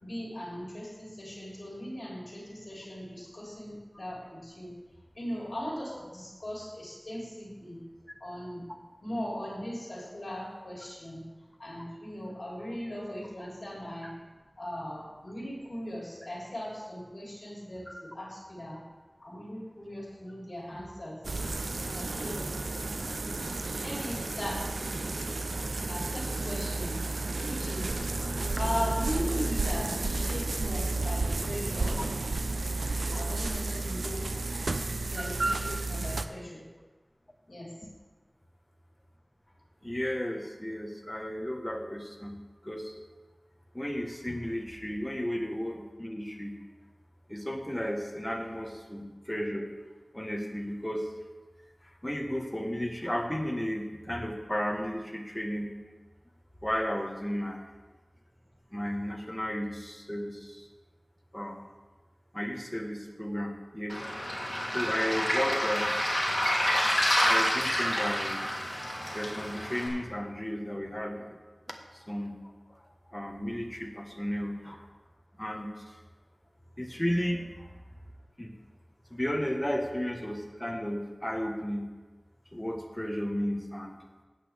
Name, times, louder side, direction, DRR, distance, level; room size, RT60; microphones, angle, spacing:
voice 1, 0.0-4.7 5.1-7.8 8.2-8.6 9.0-11.2 11.6-14.1 14.6-18.8 19.2-21.2 21.9-22.5 23.8-25.2 25.9-27.0 27.5-28.0 28.5-32.0 33.1-34.3 34.9-36.7 37.5-37.7, equal, 60° left, -5 dB, 3.2 m, -38 dB
sound 1, 21.2-36.3, right 2 dB, 85° right, 0.5 m, -32 dB
voice 2, 39.8-42.4 42.6-43.0 43.7-46.5 47.3-49.7 50.1-51.1 52.0-55.7 56.6-57.6 58.7-60.6 61.3-61.6 62.3-64.0 64.7-66.2 67.2-68.4 69.1-71.3 71.9-72.4 73.1-74.9 75.4-75.7 76.8-77.7 78.4-78.5 79.1-81.9 82.5-84.0, equal, 15° left, 1 dB, 1.4 m, -33 dB
Waves surf, 63.9-69.9, equal, 35° left, 3.2 m, -28 dB
14.5 x 8.5 x 3.5 m, 1.3 s
wide cardioid pair, 55°, 0 cm